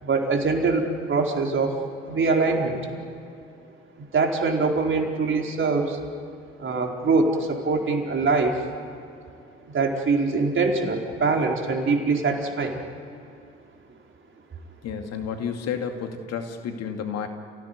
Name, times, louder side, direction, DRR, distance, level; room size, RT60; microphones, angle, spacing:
voice 1, 0.0-1.8 2.1-2.8 4.1-6.0 6.6-8.5 9.7-12.7, right 4 dB, 40° right, 1 dB, 4.5 m, -23 dB
voice 2, 14.8-17.3, left 7 dB, 60° left, 5 dB, 2.4 m, -31 dB
29.5 x 17.0 x 9.6 m, 2.6 s
hypercardioid pair, 50°, 29 cm